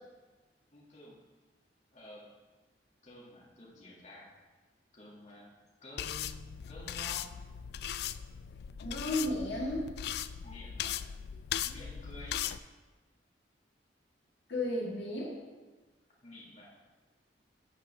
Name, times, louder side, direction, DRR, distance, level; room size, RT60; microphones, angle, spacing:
voice 1, 0.7-1.2 1.9-2.3 3.0-4.3 4.9-5.5 5.8-7.4 10.4-11.0 11.6-12.5 16.2-16.8, left 1 dB, 40° left, -5 dB, 2.2 m, -50 dB
sound 1, 6.0-12.6, left 10 dB, 60° left, 0.3 m, -38 dB
voice 2, 8.8-9.9 14.5-15.4, left 1 dB, 80° left, -3 dB, 1.9 m, -33 dB
12.5 x 6.6 x 3.4 m, 1.3 s
head